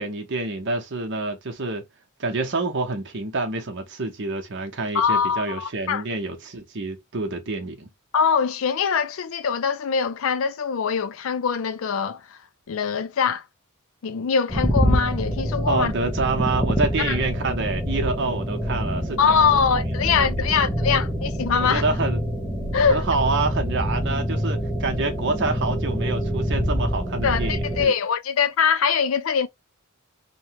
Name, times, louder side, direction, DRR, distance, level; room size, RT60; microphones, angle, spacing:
voice 1, 0.0-1.8 2.2-7.9 15.7-19.8 20.2-20.5 20.8-20.9 21.6-22.2 22.9-27.9, right 3 dB, 55° right, 0.9 m, -27 dB
voice 2, 4.9-6.0 8.1-12.4 12.7-13.4 14.0-15.9 17.0-17.2 19.2-21.8 22.7-23.0 27.2-29.5, left 6 dB, 65° left, 0.4 m, -23 dB
sound 1, 14.5-27.9, equal, 5° left, 0.6 m, -26 dB
2.9 x 2.2 x 2.8 m
head